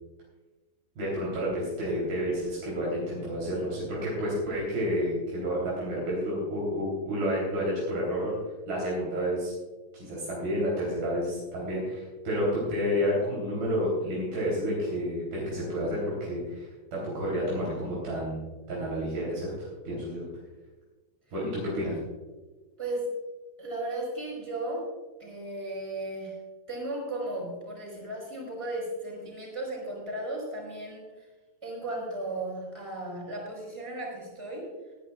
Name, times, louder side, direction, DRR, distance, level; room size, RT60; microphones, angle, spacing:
voice 1, 1.0-8.4 8.7-9.5 9.9-20.2 21.3-22.0, equal, 70° right, -6 dB, 5.4 m, -30 dB
voice 2, 23.6-24.9 25.2-26.4 26.7-31.1 31.6-34.7, right 2 dB, 10° right, -2 dB, 4.3 m, -35 dB
22.5 x 10.5 x 2.5 m, 1.2 s
omnidirectional pair, 4.4 m